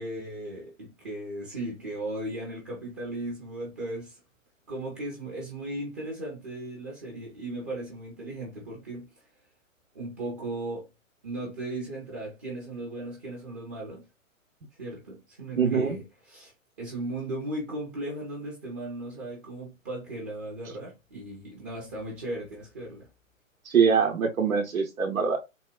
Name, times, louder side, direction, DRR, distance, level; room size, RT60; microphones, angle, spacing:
voice 1, 0.0-4.2 4.7-9.3 9.9-10.9 11.2-14.1 14.7-16.5 16.8-23.1, right 1 dB, 15° right, 0.4 m, -37 dB
voice 2, 15.6-16.0 23.6-25.4, right 6 dB, 85° right, 0.7 m, -23 dB
3.9 x 2.2 x 2.2 m
hypercardioid pair, 130°, 40 cm